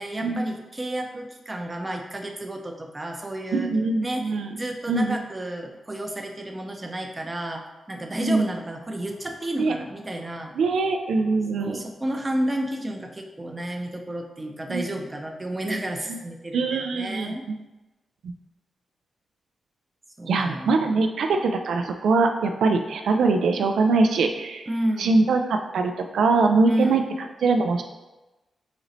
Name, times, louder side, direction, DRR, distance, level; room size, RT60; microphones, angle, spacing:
voice 1, 0.0-3.7 4.0-10.6 11.6-17.4 20.2-21.1 24.7-25.3 26.7-27.1, right 1 dB, 20° right, 3 dB, 0.5 m, -31 dB
voice 2, 3.5-4.6 4.9-5.2 8.2-8.4 9.6-9.7 10.6-11.8 14.7-14.8 16.1-16.2 16.5-17.3 18.2-18.3 20.3-24.7 25.0-27.0 27.4-27.8, right 3 dB, 90° right, 5 dB, 0.3 m, -22 dB
4.1 x 3.0 x 3.9 m, 1.1 s
wide cardioid pair, 110°, 0 cm